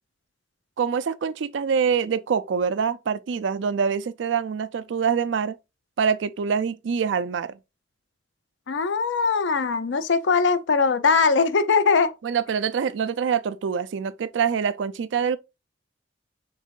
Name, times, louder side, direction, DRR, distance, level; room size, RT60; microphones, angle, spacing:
voice 1, 0.8-5.6 6.0-7.6 12.2-15.4, right 6 dB, 80° right, 0.4 m, -25 dB
voice 2, 8.7-12.1, left 4 dB, 80° left, 0.5 m, -21 dB
5.4 x 3.6 x 2.4 m
head